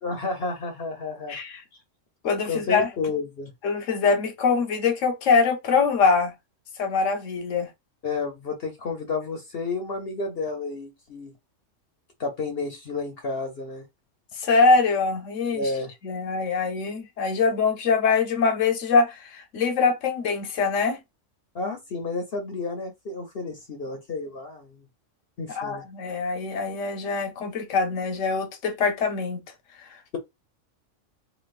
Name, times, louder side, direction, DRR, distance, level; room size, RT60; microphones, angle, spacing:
voice 1, 0.0-1.4 2.4-3.5 8.0-11.3 12.2-13.8 15.5-15.9 21.5-24.8 25.4-25.8, left 3 dB, 55° left, 1.0 m, -31 dB
voice 2, 1.3-1.6 2.2-2.9 3.6-6.3 6.8-7.7 14.4-15.7 16.0-21.0 25.6-29.4, left 4 dB, 75° left, 1.3 m, -23 dB
4.0 x 3.0 x 2.4 m
omnidirectional pair, 1.3 m